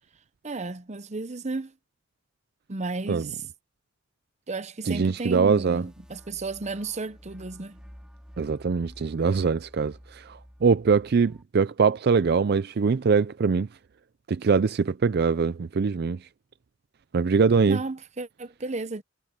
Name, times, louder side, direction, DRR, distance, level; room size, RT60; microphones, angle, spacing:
voice 1, 0.4-1.7 2.7-3.4 4.5-7.8 17.7-19.0, right 3 dB, 35° right, 0.8 m, -33 dB
voice 2, 4.8-5.8 8.4-13.7 14.3-16.3 17.1-17.8, right 5 dB, 50° right, 0.4 m, -23 dB
sound 1, 5.2-11.4, equal, 5° right, 5.1 m, -50 dB
head